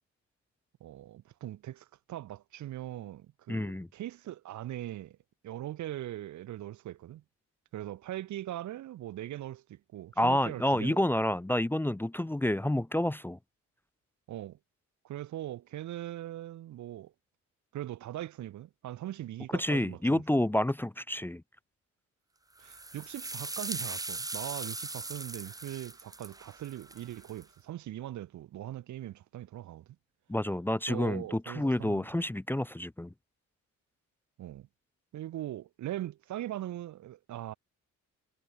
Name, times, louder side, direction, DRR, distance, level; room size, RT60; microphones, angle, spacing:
voice 1, 0.8-5.2 5.4-7.2 7.7-11.0 14.3-14.6 15.0-17.1 17.7-20.2 22.6-29.8 30.9-32.1 34.4-34.7 35.1-37.5, right 13 dB, 70° right, 1.1 m, -40 dB
voice 2, 3.5-3.9 10.2-13.4 19.5-21.4 30.3-33.1, left 1 dB, 5° left, 0.7 m, -29 dB
sound 1, 22.6-27.4, right 2 dB, 10° right, 1.1 m, -40 dB
cardioid pair, 90°, 30 cm